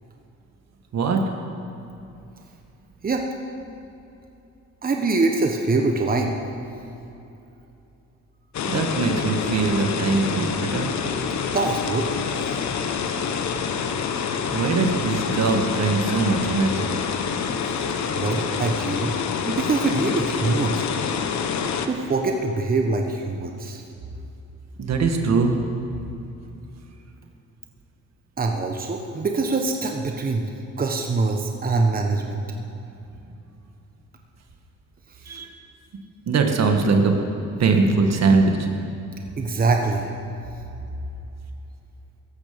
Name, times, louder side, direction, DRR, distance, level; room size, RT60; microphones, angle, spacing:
voice 1, 0.9-1.2 8.6-10.9 14.5-16.9 24.8-25.5 35.3-35.5 36.3-37.2 37.6-38.7, right 4 dB, 60° right, 4 dB, 1.8 m, -21 dB
voice 2, 4.8-6.4 11.5-12.1 18.1-20.9 21.9-23.8 28.4-30.5 30.8-32.4 39.4-40.1, right 3 dB, 30° right, 2 dB, 1.3 m, -24 dB
sound 1, 8.5-21.9, left 6 dB, 65° left, 1.2 m, -27 dB
17.0 x 14.0 x 5.3 m, 2.8 s
cardioid pair, 90°, 30 cm